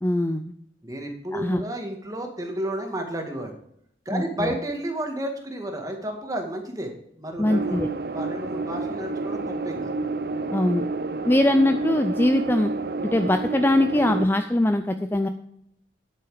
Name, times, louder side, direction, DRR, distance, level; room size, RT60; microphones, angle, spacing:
voice 1, 0.0-0.5 1.3-1.6 4.1-4.6 7.4-7.9 10.5-10.8 11.3-12.7 13.0-15.3, left 1 dB, 10° left, 8 dB, 0.4 m, -22 dB
voice 2, 0.8-3.6 4.1-7.8 8.1-9.9, right 1 dB, 20° right, 3 dB, 1.9 m, -32 dB
sound 1, 7.4-14.3, right 3 dB, 55° right, 0.7 m, -29 dB
10.0 x 8.5 x 4.9 m, 0.71 s
head